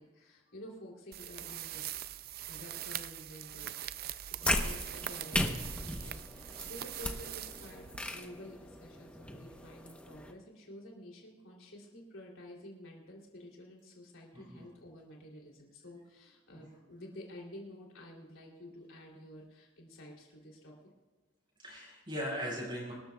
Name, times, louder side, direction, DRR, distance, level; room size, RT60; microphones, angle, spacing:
voice 1, 0.0-2.2 2.5-3.7 4.0-20.7, equal, 75° left, -1 dB, 3.0 m, -50 dB
sound 1, 1.1-8.3, right 12 dB, 45° right, 0.4 m, -43 dB
sound 2, 4.4-10.3, left 1 dB, 5° left, 0.8 m, -37 dB
voice 2, 14.3-14.7 16.5-16.6 21.6-22.9, equal, 25° right, -5 dB, 5.2 m, -39 dB
25.0 x 13.0 x 2.3 m, 1.3 s
head